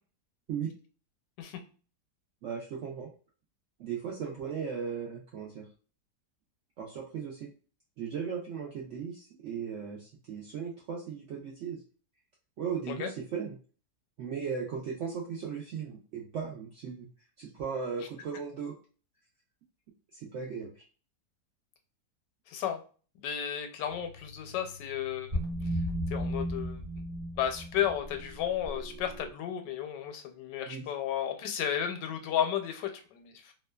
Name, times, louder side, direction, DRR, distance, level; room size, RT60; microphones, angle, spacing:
voice 1, 2.4-3.1 3.8-5.7 6.8-7.5 8.0-11.8 12.6-13.6 14.2-17.1 17.4-18.7 20.1-20.8 30.6-30.8, right 6 dB, 85° right, -2 dB, 0.6 m, -37 dB
voice 2, 22.5-22.8 23.2-25.4 26.1-26.8 27.3-33.5, left 9 dB, 85° left, 5 dB, 1.2 m, -33 dB
sound 1, 23.9-29.3, equal, 40° right, 0.7 m, -36 dB
2.8 x 2.2 x 2.2 m, 0.38 s
omnidirectional pair, 1.8 m